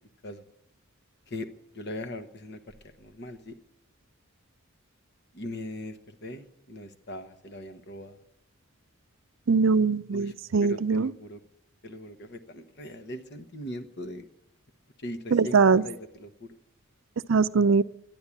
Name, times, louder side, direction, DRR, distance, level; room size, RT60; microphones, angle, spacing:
voice 1, 1.3-3.6 5.3-8.2 10.1-10.3 10.6-11.4 11.8-14.3 15.0-16.6, left 1 dB, 55° left, 9 dB, 1.1 m, -40 dB
voice 2, 9.5-11.1 15.3-15.8 17.3-17.8, right 5 dB, 65° right, 15 dB, 0.5 m, -21 dB
12.5 x 11.0 x 8.6 m, 0.82 s
head